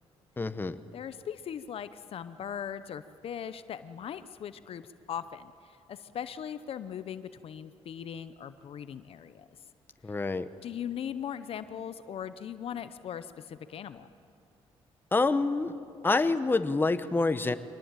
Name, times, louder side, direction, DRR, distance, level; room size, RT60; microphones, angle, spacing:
voice 1, 0.4-0.8 10.0-10.5 15.1-15.7 16.0-17.5, left 3 dB, 20° left, 11 dB, 1.0 m, -27 dB
voice 2, 0.9-9.5 10.6-14.1, left 9 dB, 60° left, 13 dB, 0.8 m, -39 dB
24.5 x 19.0 x 9.0 m, 2.4 s
cardioid pair, 95°, 11 cm